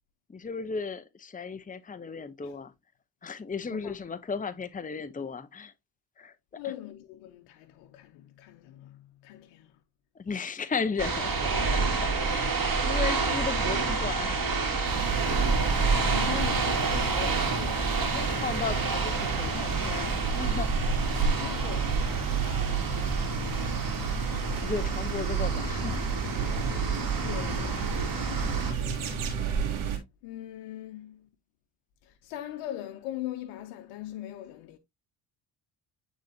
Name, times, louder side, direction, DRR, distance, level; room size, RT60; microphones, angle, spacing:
voice 1, 0.3-2.7 3.2-5.7 6.2-6.3 10.2-12.5 12.8-14.5 18.4-20.7 24.6-26.0, left 5 dB, 15° left, 0.8 m, -35 dB
voice 2, 6.6-9.8 16.0-18.4 21.4-22.2 26.5-26.8 27.2-27.9 28.8-29.2 30.2-31.3 32.0-34.8, left 13 dB, 85° left, 0.8 m, -41 dB
sound 1, 11.0-28.7, right 3 dB, 45° right, 2.6 m, -29 dB
sound 2, 14.8-30.0, right 6 dB, 75° right, 2.4 m, -31 dB
9.0 x 4.2 x 2.8 m
supercardioid pair, 50°, 49 cm